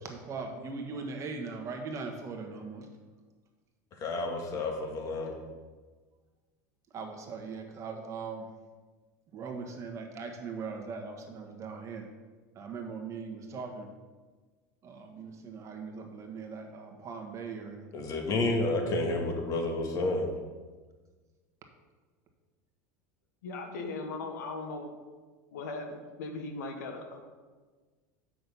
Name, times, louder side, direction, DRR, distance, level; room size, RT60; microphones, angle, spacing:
voice 1, 0.0-2.9 6.9-8.5 9.3-12.0 12.5-13.9 14.8-17.9, right 4 dB, 35° right, 3 dB, 1.4 m, -40 dB
voice 2, 4.0-5.3 17.9-20.3, left 2 dB, 40° left, 2 dB, 1.8 m, -30 dB
voice 3, 23.4-24.9 25.5-27.2, left 3 dB, 90° left, 4 dB, 1.4 m, -38 dB
7.6 x 6.2 x 5.5 m, 1.4 s
supercardioid pair, 120°, 9 cm